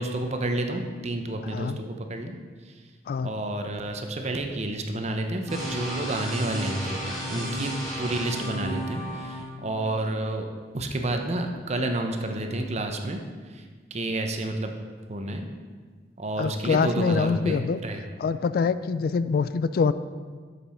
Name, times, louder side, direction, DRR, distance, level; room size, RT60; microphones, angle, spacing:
voice 1, 0.0-2.3 3.2-7.7 8.0-10.5 10.7-13.2 13.5-13.6 13.9-14.8 15.1-15.5 16.2-18.0, right 1 dB, 40° right, 5 dB, 0.8 m, -30 dB
sound 1, 5.5-9.4, equal, ahead, 2.7 m, -33 dB
voice 2, 16.4-17.8 18.2-19.9, left 5 dB, 55° left, 13 dB, 0.3 m, -25 dB
7.2 x 6.8 x 5.5 m, 1.5 s
head